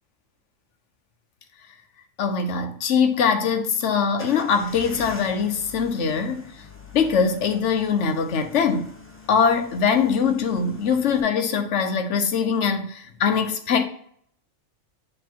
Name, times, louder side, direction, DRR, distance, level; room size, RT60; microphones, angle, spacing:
voice 1, 2.2-6.5 6.9-8.9 9.3-13.8, left 6 dB, 65° left, 1.0 m, -22 dB
sound 1, 4.2-11.2, left 3 dB, 10° left, 0.7 m, -44 dB
8.1 x 3.3 x 4.4 m
omnidirectional pair, 1.4 m